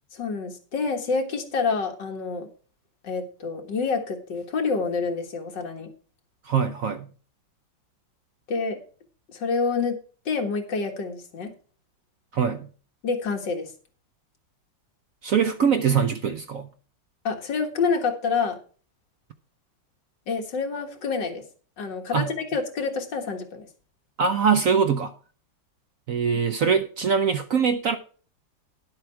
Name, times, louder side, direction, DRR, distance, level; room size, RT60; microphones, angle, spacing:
voice 1, 0.1-2.5 3.0-5.9 8.5-8.8 9.3-10.0 10.3-11.5 13.0-13.7 17.2-18.6 20.3-21.4 21.8-23.7, left 4 dB, 70° left, 2.3 m, -27 dB
voice 2, 6.4-7.1 12.3-12.7 15.2-16.7 22.1-22.3 24.2-25.1 26.1-28.0, right 6 dB, 60° right, 0.9 m, -23 dB
11.0 x 7.9 x 4.6 m
omnidirectional pair, 2.0 m